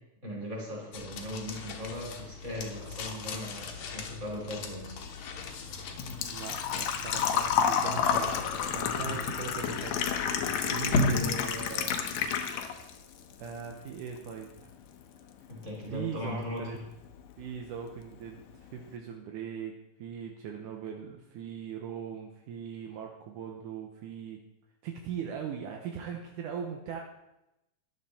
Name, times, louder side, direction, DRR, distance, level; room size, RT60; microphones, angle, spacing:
voice 1, 0.2-5.0 9.0-9.2 11.1-11.4 15.5-16.8, left 1 dB, 20° right, -3 dB, 4.0 m, -38 dB
sound 1, 0.9-12.3, left 2 dB, 65° left, 2.4 m, -37 dB
Engine / Trickle dribble / Fill (with liquid), 5.0-13.0 13.3-14.3 14.6-14.7 16.6-16.7 16.9-17.2 17.6-17.7 17.9-18.0, left 8 dB, 80° left, 2.6 m, -30 dB
voice 2, 5.9-8.4 8.7-12.0 13.4-14.8 15.9-16.8 17.4-24.4 24.8-27.0, right 7 dB, 75° right, 2 dB, 2.4 m, -40 dB
13.5 x 11.0 x 4.2 m, 0.90 s
omnidirectional pair, 3.8 m